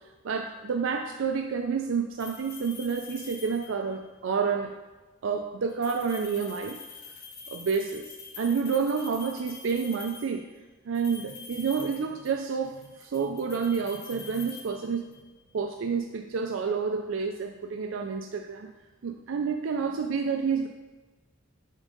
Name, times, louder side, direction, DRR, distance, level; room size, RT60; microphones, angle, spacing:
voice 1, 0.2-4.7 5.2-6.8 7.5-8.0 8.4-10.4 10.9-15.0 15.5-18.7 19.0-20.7, right 5 dB, 70° right, 4 dB, 0.4 m, -29 dB
sound 1, 2.2-3.9 5.7-10.4 10.9-12.5 12.8-15.3, left 5 dB, 50° left, 1.0 m, -45 dB
7.3 x 3.6 x 5.2 m, 1.2 s
head